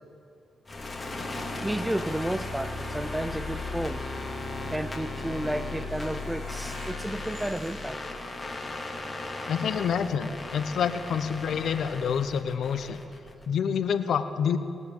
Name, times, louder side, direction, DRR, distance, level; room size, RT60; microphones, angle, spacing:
sound 1, 0.7-13.5, left 2 dB, 30° left, 2.3 m, -36 dB
voice 1, 1.6-4.0 4.7-8.0, right 1 dB, 10° right, 16 dB, 0.5 m, -32 dB
Screech, 5.9-8.9 9.3-9.4 9.8-9.9, right 1 dB, 60° right, 3.2 m, -50 dB
voice 2, 9.5-13.0 13.5-14.6, left 7 dB, 70° left, 11 dB, 0.7 m, -27 dB
19.5 x 6.8 x 8.5 m, 2.5 s
supercardioid pair, 45°, 0 cm